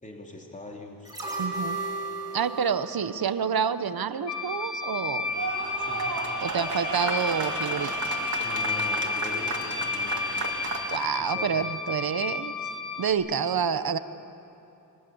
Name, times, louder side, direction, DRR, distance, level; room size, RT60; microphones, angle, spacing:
voice 1, 0.0-1.3 5.8-6.3 8.4-10.3 11.2-11.5, left 2 dB, 20° left, -1 dB, 3.5 m, -43 dB
sound 1, 1.0-4.2 4.5-4.6, right 2 dB, 10° right, 6.1 m, -35 dB
voice 2, 1.4-1.8 2.3-5.2 6.4-7.9 10.9-12.5 13.0-14.0, right 7 dB, 70° right, 12 dB, 1.0 m, -28 dB
sound 2, 4.3-13.1, left 4 dB, 85° left, 3.7 m, -32 dB
sound 3, 5.2-11.2, right 4 dB, 50° right, 2.6 m, -33 dB
29.5 x 22.5 x 8.0 m, 2.9 s
wide cardioid pair, 100°, 37 cm